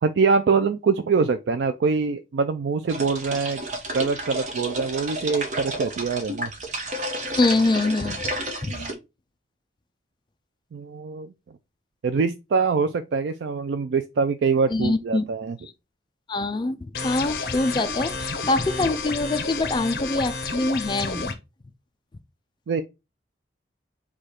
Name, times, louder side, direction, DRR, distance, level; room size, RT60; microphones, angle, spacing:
voice 1, 0.0-3.6 3.9-6.5 8.7-8.9 10.7-11.3 12.0-15.6 22.7-22.8, right 5 dB, 75° right, 0.4 m, -24 dB
sound 1, 2.9-8.9, right 1 dB, 45° right, 0.9 m, -31 dB
voice 2, 7.4-8.3 8.6-8.8 14.7-15.3 15.6-15.7 16.3-21.4, left 2 dB, 25° left, 0.3 m, -24 dB
sound 2, 16.9-21.3, left 4 dB, 55° left, 0.8 m, -30 dB
4.9 x 2.3 x 4.3 m
head